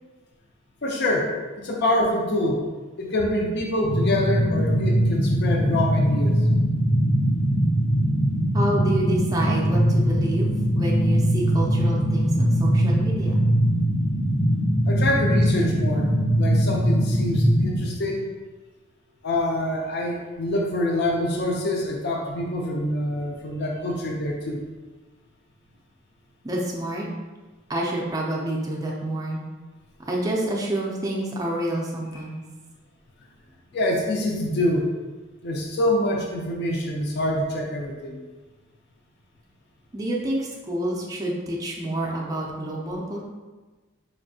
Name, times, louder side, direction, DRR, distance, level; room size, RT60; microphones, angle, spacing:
voice 1, 0.8-2.6 3.0-6.4 14.9-16.1 16.4-18.3 19.2-24.6 33.7-34.9 35.4-38.2, left 1 dB, 50° left, 0 dB, 0.5 m, -25 dB
sound 1, 3.8-17.8, equal, 75° left, 1.2 m, -21 dB
voice 2, 8.5-13.4 26.4-27.1 27.7-29.4 30.1-32.4 39.9-43.2, right 1 dB, 15° right, -3 dB, 0.4 m, -28 dB
4.2 x 2.7 x 2.7 m, 1.3 s
head